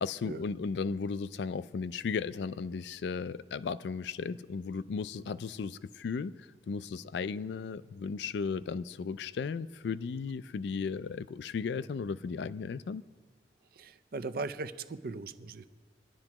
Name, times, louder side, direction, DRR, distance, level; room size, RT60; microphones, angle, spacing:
voice 1, 0.0-13.0, left 5 dB, 75° left, 0.3 m, -35 dB
voice 2, 13.7-15.7, right 3 dB, 55° right, 0.5 m, -38 dB
23.5 x 10.5 x 2.9 m
head